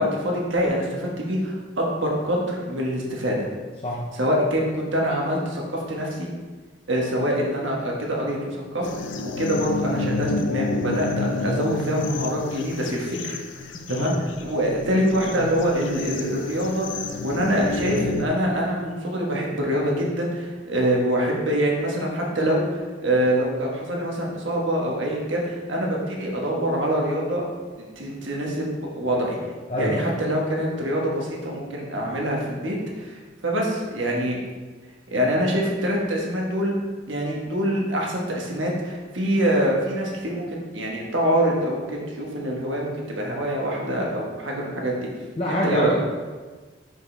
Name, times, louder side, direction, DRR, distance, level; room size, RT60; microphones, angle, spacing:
voice 1, 0.0-3.5 4.1-6.3 6.9-13.4 13.9-27.5 27.8-29.4 29.7-34.4 35.1-36.8 37.1-45.1 45.5-46.0, equal, 75° right, -2 dB, 1.3 m, -25 dB
sound 1, 8.8-18.3, left 3 dB, 70° left, 0.5 m, -30 dB
voice 2, 13.7-14.1 29.7-30.1 45.4-46.0, equal, 30° left, -4 dB, 0.6 m, -25 dB
6.1 x 5.1 x 3.3 m, 1.4 s
head